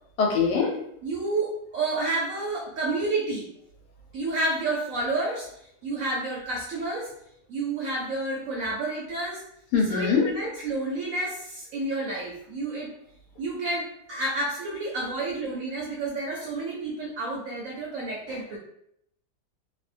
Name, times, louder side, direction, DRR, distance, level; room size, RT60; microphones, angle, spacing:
voice 1, 0.2-0.7 9.7-10.3, left 5 dB, 80° left, 1 dB, 1.2 m, -22 dB
voice 2, 1.0-3.5 4.1-5.5 5.8-7.1 7.5-9.4 9.9-12.9 13.4-18.6, right 2 dB, 70° right, -3 dB, 0.8 m, -30 dB
2.7 x 2.1 x 2.4 m, 0.72 s
omnidirectional pair, 1.8 m